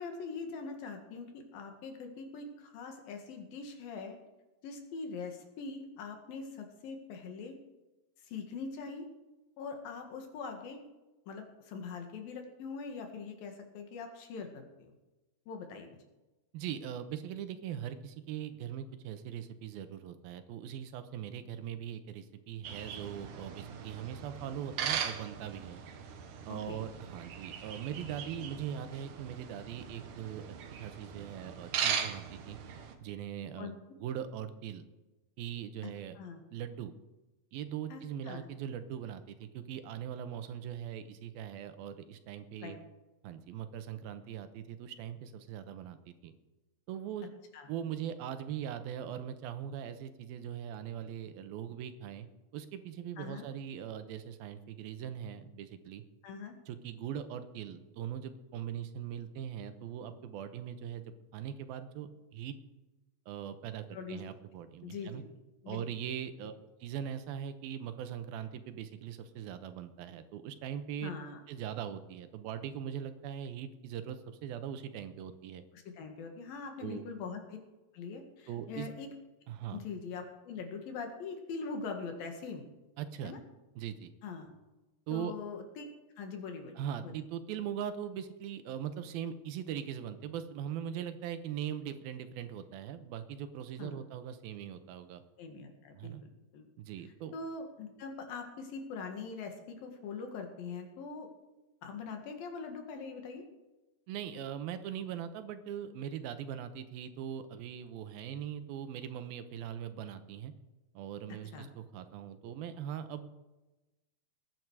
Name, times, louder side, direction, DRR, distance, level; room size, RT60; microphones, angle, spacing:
voice 1, 0.0-4.2 4.6-7.6 8.2-9.1 9.6-10.9 11.3-14.9 15.5-16.0 26.5-26.8 33.6-33.7 35.8-36.4 37.9-38.5 42.6-42.8 47.5-47.7 53.2-53.5 56.2-56.6 63.9-64.2 64.8-65.2 65.6-65.8 71.0-71.4 75.7-77.6 77.9-79.1 79.7-82.6 83.2-83.4 84.2-84.5 85.1-85.9 86.2-86.8 87.0-87.2 93.8-94.0 95.4-96.1 96.5-96.7 97.3-101.3 101.8-103.4 111.5-111.7, left 4 dB, 80° left, 4 dB, 3.6 m, -42 dB
voice 2, 16.5-25.8 26.5-30.5 30.8-32.6 33.0-34.8 35.4-36.2 36.5-36.9 37.5-42.8 43.2-46.3 46.9-47.3 47.7-52.3 52.5-56.0 56.7-61.0 61.3-62.6 63.3-65.2 65.7-66.5 66.8-71.1 71.5-75.6 76.8-77.0 78.5-78.9 79.5-79.8 83.0-83.3 83.8-84.1 85.1-85.3 86.8-95.2 96.0-96.2 96.8-97.3 104.1-110.5 110.9-113.3, right 9 dB, 85° right, 10 dB, 2.8 m, -41 dB
sound 1, 22.6-33.0, right 8 dB, 70° right, 2.5 m, -39 dB
20.5 x 9.1 x 4.8 m, 1.1 s
omnidirectional pair, 4.1 m